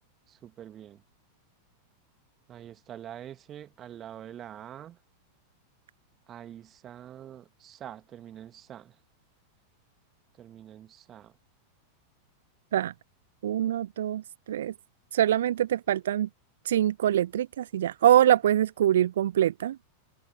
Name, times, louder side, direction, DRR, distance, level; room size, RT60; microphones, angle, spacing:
voice 1, 0.3-1.0 2.5-5.0 6.3-8.9 10.4-11.3, right 10 dB, 30° right, 2.0 m, -45 dB
voice 2, 13.4-14.2 14.5-14.7 15.1-16.3 16.6-19.8, right 11 dB, 60° right, 0.8 m, -24 dB
figure-of-eight pair, 90°, 0 cm